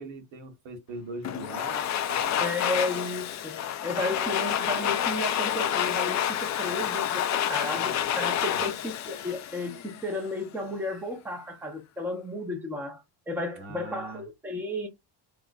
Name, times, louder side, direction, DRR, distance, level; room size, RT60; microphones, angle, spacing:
voice 1, 0.0-2.4 7.7-8.6 13.5-14.2, right 2 dB, 80° right, 1.6 m, -41 dB
Domestic sounds home sounds, 1.2-10.2, left 10 dB, 40° left, 0.4 m, -29 dB
voice 2, 2.4-14.9, left 2 dB, 5° right, 0.7 m, -33 dB
3.6 x 3.0 x 2.6 m
cardioid pair, 160°, 45 cm